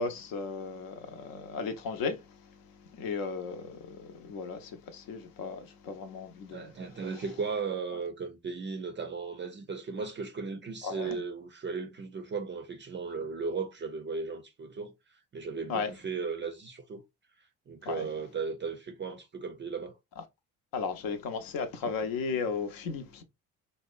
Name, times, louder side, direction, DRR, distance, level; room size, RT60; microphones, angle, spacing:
voice 1, 0.0-6.7 7.1-7.2 10.8-11.2 15.7-15.9 17.8-18.1 20.2-20.3 20.7-23.2, left 5 dB, 60° left, 0.7 m, -35 dB
voice 2, 6.5-17.0 17.4-20.0, right 5 dB, 30° right, 0.5 m, -36 dB
2.8 x 2.0 x 2.4 m
hypercardioid pair, 50°, 40 cm